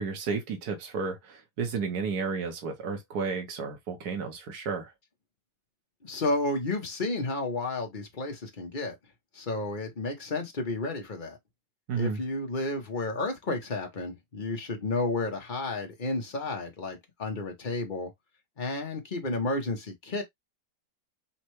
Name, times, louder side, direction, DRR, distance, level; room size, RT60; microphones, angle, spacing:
voice 1, 0.0-4.9 11.9-12.2, right 5 dB, 65° right, 1.7 m, -32 dB
voice 2, 6.0-8.9 9.3-11.4 11.9-18.1 18.6-20.2, left 2 dB, 30° left, 1.2 m, -32 dB
5.6 x 2.5 x 3.0 m
omnidirectional pair, 1.8 m